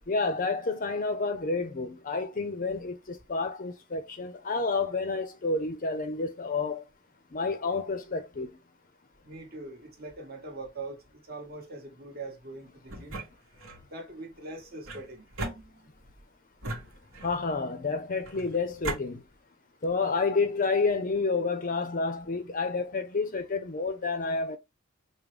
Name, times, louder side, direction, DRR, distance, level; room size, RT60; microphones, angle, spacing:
voice 1, 0.1-6.8 7.3-8.5 17.2-19.2 19.8-24.6, left 4 dB, 40° left, 0.6 m, -29 dB
voice 2, 9.2-13.2 13.8-15.2, right 2 dB, 45° right, 1.3 m, -42 dB
sound 1, 12.9-13.8 14.8-16.1 16.6-17.5 18.2-19.0, right 2 dB, 65° right, 1.1 m, -38 dB
5.1 x 2.1 x 3.2 m
head